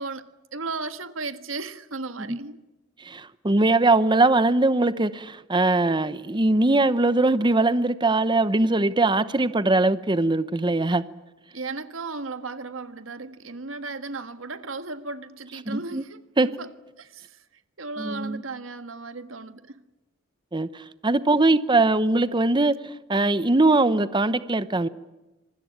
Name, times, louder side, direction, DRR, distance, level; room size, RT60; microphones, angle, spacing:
voice 1, 0.0-2.6 11.5-16.7 17.0-17.4 17.8-19.8, right 3 dB, 80° right, 1.5 m, -35 dB
voice 2, 3.0-11.0 15.7-16.0 16.4-16.5 18.0-18.4 20.5-24.9, right 2 dB, 25° right, 0.8 m, -21 dB
26.0 x 20.5 x 8.8 m
head